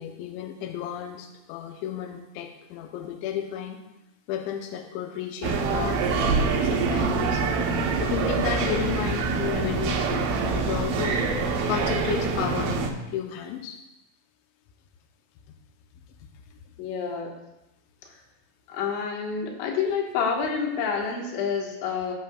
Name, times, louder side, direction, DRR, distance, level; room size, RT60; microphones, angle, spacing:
voice 1, 0.0-3.8 4.3-7.7 8.0-11.2 11.7-13.8, left 9 dB, 85° left, 3 dB, 2.7 m, -33 dB
sound 1, 5.4-12.9, right 4 dB, 75° right, 3.0 m, -25 dB
voice 2, 9.4-9.8 16.8-17.3 18.7-22.1, left 6 dB, 70° left, 0 dB, 3.4 m, -28 dB
19.5 x 6.8 x 2.3 m, 0.94 s
omnidirectional pair, 5.9 m